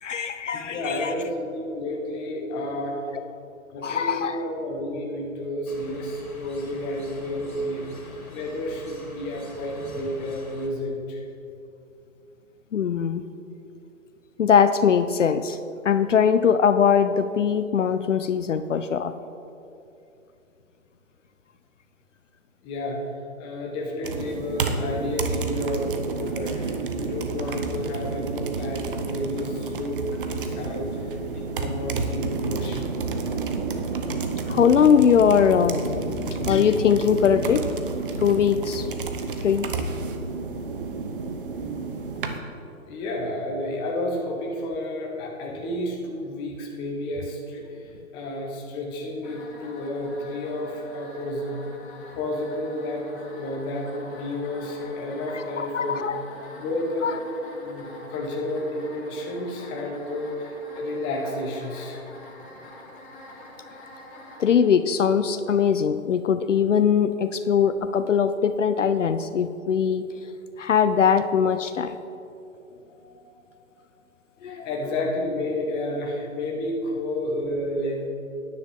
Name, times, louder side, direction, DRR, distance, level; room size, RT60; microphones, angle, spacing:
voice 1, 0.0-1.1 3.8-4.5 12.7-13.2 14.4-15.6 15.8-19.1 34.5-37.7 38.2-38.9 39.4-39.7 55.3-56.2 57.0-57.2 64.4-70.1 70.6-72.0 74.4-74.7, left 7 dB, 60° left, 11 dB, 0.6 m, -21 dB
voice 2, 0.5-3.0 3.7-11.2 22.6-23.0 23.4-32.8 42.8-51.6 52.1-56.1 56.5-57.1 57.4-62.0 69.8-69.9 72.7-73.6 74.4-78.1, left 1 dB, 10° left, 0 dB, 0.8 m, -31 dB
sound 1, 5.7-10.7, left 2 dB, 90° left, 2.5 m, -44 dB
sound 2, 24.0-42.4, right 4 dB, 40° right, 0.9 m, -30 dB
sound 3, 49.2-64.5, left 2 dB, 40° left, 2.4 m, -45 dB
13.5 x 10.0 x 3.7 m, 2.7 s
figure-of-eight pair, 140°, 41 cm